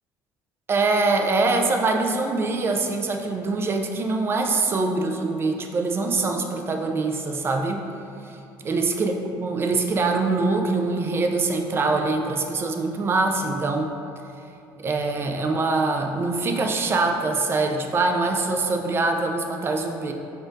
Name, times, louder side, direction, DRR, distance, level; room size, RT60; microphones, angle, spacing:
voice 1, 0.7-7.8 8.7-13.9 14.8-20.1, right 3 dB, 30° right, 3 dB, 0.4 m, -24 dB
4.3 x 2.5 x 4.5 m, 2.6 s
cardioid pair, 110°, 8 cm